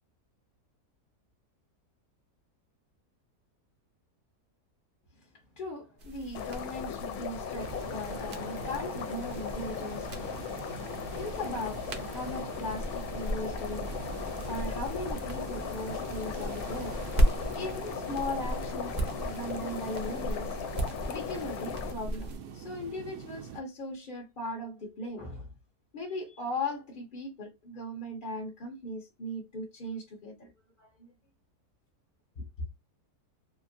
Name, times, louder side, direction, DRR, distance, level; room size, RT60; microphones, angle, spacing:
voice 1, 5.6-10.3 11.1-14.1 14.5-17.0 17.5-20.5 21.1-25.5 25.9-30.5 30.8-31.1 32.4-32.5, left 1 dB, 50° left, 0.6 m, -38 dB
sound 1, 6.0-22.4, equal, 60° right, 0.4 m, -36 dB
sound 2, 6.3-21.9, left 8 dB, 75° left, 1.0 m, -38 dB
sound 3, 7.6-23.6, right 8 dB, 85° right, 1.2 m, -44 dB
2.9 x 2.4 x 2.5 m
omnidirectional pair, 1.7 m